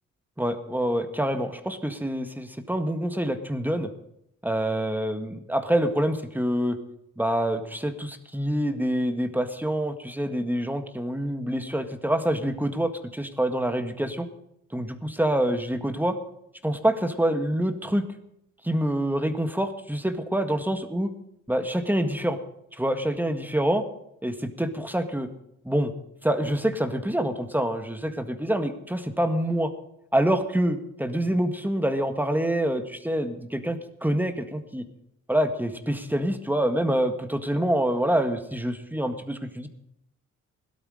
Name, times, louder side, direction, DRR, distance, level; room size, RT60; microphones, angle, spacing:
voice 1, 0.4-3.9 4.4-6.8 7.2-14.3 14.7-16.2 16.6-18.1 18.6-21.1 21.5-22.4 22.8-23.8 24.2-25.3 25.7-25.9 26.2-29.7 30.1-34.8 35.3-39.7, right 1 dB, 5° right, 7 dB, 1.7 m, -26 dB
17.0 x 12.5 x 5.0 m, 0.77 s
cardioid pair, 90°, 30 cm